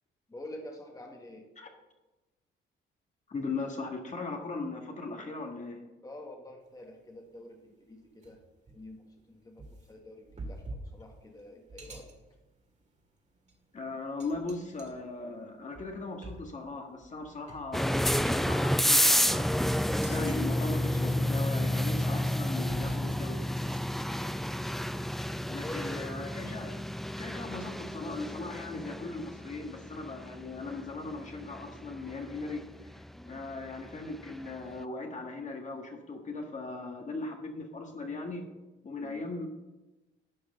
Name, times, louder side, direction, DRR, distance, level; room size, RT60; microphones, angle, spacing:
voice 1, 0.3-1.4 6.0-8.4 8.7-12.1 23.9-24.4 25.5-26.2 33.1-33.4 39.0-39.2, left 1 dB, 20° left, 1 dB, 1.6 m, -47 dB
voice 2, 3.3-5.8 13.7-19.5 20.1-23.5 25.5-26.8 27.2-32.6 32.9-38.5 38.8-39.5, left 3 dB, 35° left, 2 dB, 1.7 m, -38 dB
sound 1, 6.6-6.9 7.4-7.5 8.2-25.4, right 2 dB, 35° right, 2.3 m, -49 dB
sound 2, 17.7-34.5, left 1 dB, ahead, 0.4 m, -30 dB
11.5 x 4.9 x 6.7 m, 1.1 s
cardioid pair, 90°, 20 cm